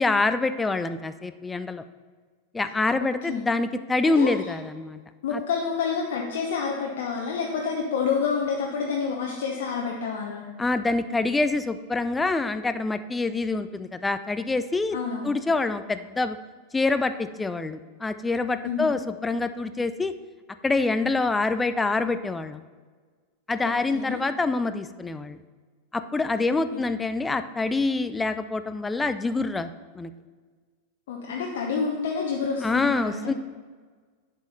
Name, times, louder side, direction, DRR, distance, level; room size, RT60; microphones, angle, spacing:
voice 1, 0.0-1.8 2.5-5.0 5.3-5.4 10.6-15.0 15.2-16.4 16.7-20.1 20.6-22.6 23.5-25.4 25.9-29.7 29.9-30.1 32.6-33.3, left 3 dB, 10° left, 11 dB, 0.4 m, -26 dB
voice 2, 5.2-10.5 14.9-15.4 18.6-18.9 23.6-24.2 26.5-26.8 31.1-33.3, left 5 dB, 55° left, -1 dB, 0.9 m, -28 dB
10.5 x 5.4 x 4.2 m, 1.5 s
figure-of-eight pair, 90°, 0 cm